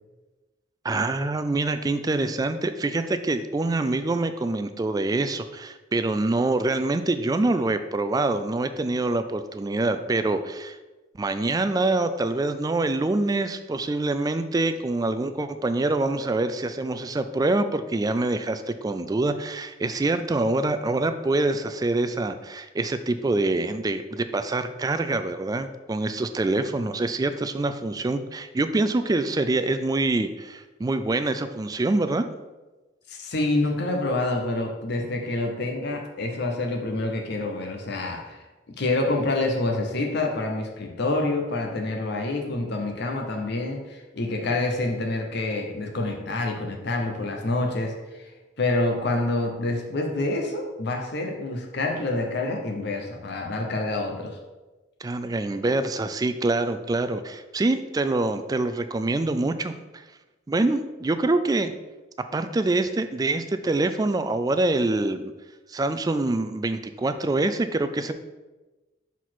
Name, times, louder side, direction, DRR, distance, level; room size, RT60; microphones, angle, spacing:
voice 1, 0.8-10.8 11.2-32.3 55.0-59.7 60.5-61.7 62.2-65.3 65.7-68.1, right 2 dB, 20° right, 10 dB, 0.3 m, -25 dB
voice 2, 33.1-38.4 38.8-48.3 48.6-54.4, left 2 dB, 60° left, 2 dB, 0.8 m, -27 dB
6.2 x 4.1 x 4.5 m, 1.2 s
head